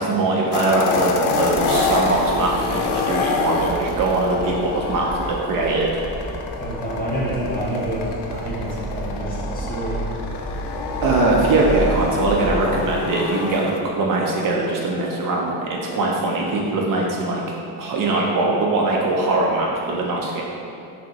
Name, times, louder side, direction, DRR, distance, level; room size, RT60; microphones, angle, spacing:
voice 1, 0.0-5.9 11.0-17.4 17.8-20.4, right 2 dB, 55° right, -2 dB, 0.5 m, -21 dB
sound 1, 0.5-13.8, left 4 dB, 85° left, 0.5 m, -27 dB
Livestock farm animals working animals, 1.4-12.9, right 2 dB, 15° right, 1.2 m, -32 dB
voice 2, 6.6-10.0, equal, 20° left, -7 dB, 0.9 m, -28 dB
5.9 x 2.0 x 2.8 m, 2.6 s
cardioid pair, 155°, 40 cm